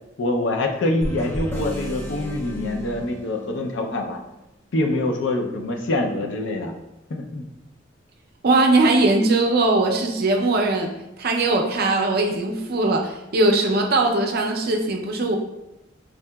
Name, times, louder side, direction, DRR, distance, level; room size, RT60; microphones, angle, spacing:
voice 1, 0.2-4.2 4.7-6.7 7.1-7.4, left 2 dB, 65° left, 3 dB, 0.5 m, -25 dB
sound 1, 1.0-3.8, equal, 10° left, 0.4 m, -32 dB
voice 2, 8.4-10.9 11.2-15.4, right 2 dB, 50° right, 2 dB, 0.5 m, -20 dB
4.7 x 2.7 x 2.2 m, 0.91 s
head